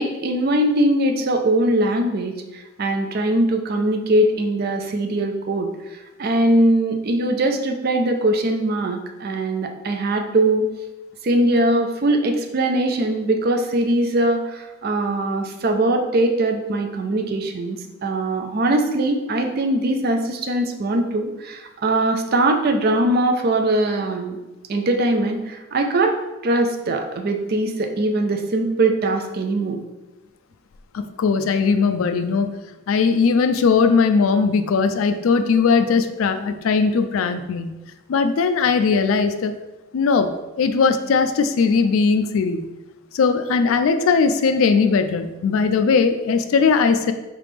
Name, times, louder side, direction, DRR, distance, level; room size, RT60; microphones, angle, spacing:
voice 1, 0.0-10.6 11.2-24.4 24.7-29.8, right 1 dB, 45° right, 4 dB, 0.4 m, -21 dB
voice 2, 30.9-32.5 32.9-37.8 38.1-39.5 39.9-42.7 43.1-47.1, left 5 dB, 70° left, 8 dB, 0.3 m, -19 dB
3.7 x 3.3 x 3.5 m, 1.0 s
head